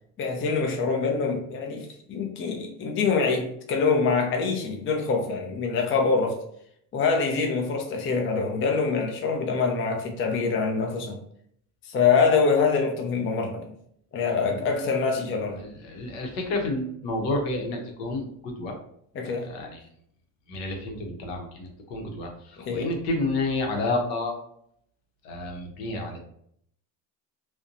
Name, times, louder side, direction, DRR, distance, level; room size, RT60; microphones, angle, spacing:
voice 1, 0.2-6.4 6.9-11.2 11.8-13.7 14.1-15.6 19.2-19.5 22.6-22.9, left 5 dB, 30° left, 2 dB, 0.5 m, -25 dB
voice 2, 15.6-18.8 19.4-19.8 20.5-24.4 25.2-26.2, left 2 dB, 70° left, 2 dB, 0.8 m, -30 dB
2.5 x 2.2 x 2.5 m, 0.68 s
supercardioid pair, 75°, 46 cm